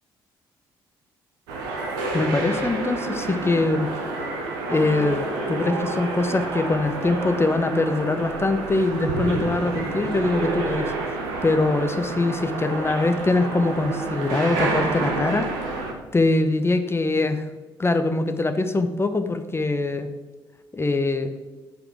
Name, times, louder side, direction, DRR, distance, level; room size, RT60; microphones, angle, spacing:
sound 1, 1.5-15.9, right 2 dB, 70° right, 1.2 m, -29 dB
voice 1, 2.1-3.9 4.7-10.9 11.4-15.5 16.1-17.4 17.8-20.1 20.7-21.3, left 2 dB, 20° left, 8 dB, 0.8 m, -23 dB
9.5 x 4.9 x 4.8 m, 1.3 s
figure-of-eight pair, 45°, 12 cm